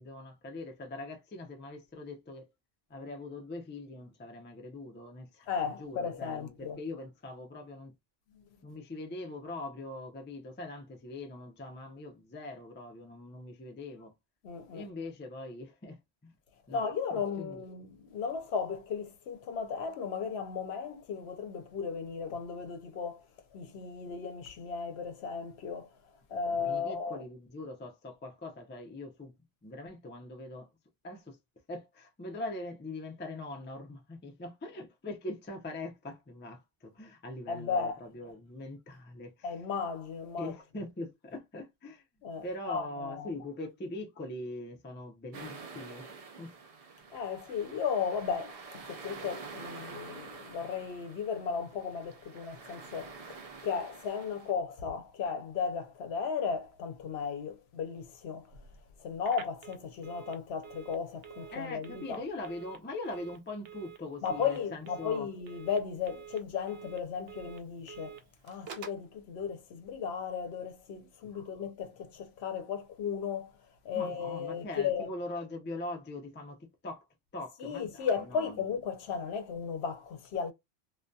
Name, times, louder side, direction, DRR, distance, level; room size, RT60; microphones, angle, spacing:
voice 1, 0.0-2.5 2.9-7.9 8.6-14.1 14.7-16.0 16.2-16.3 16.7-17.6 26.5-29.3 29.6-30.7 31.0-31.4 31.7-39.6 40.4-42.0 42.4-46.1 46.4-46.5 61.5-65.3 71.2-71.6 73.9-77.0 77.3-78.6, left 2 dB, 20° left, 0.3 m, -42 dB
voice 2, 5.5-6.8 8.3-8.4 14.4-14.9 16.7-23.2 23.5-25.9 26.3-27.2 37.5-38.0 39.4-40.5 42.2-43.3 47.1-53.2 53.6-58.5 59.0-62.2 64.2-68.2 68.4-73.5 73.8-75.1 77.6-80.5, left 6 dB, 75° left, 0.8 m, -35 dB
sound 1, 45.3-54.5, right 4 dB, 55° right, 0.4 m, -48 dB
Telephone, 59.2-69.1, right 8 dB, 70° right, 0.8 m, -50 dB
2.6 x 2.2 x 2.2 m
omnidirectional pair, 1.1 m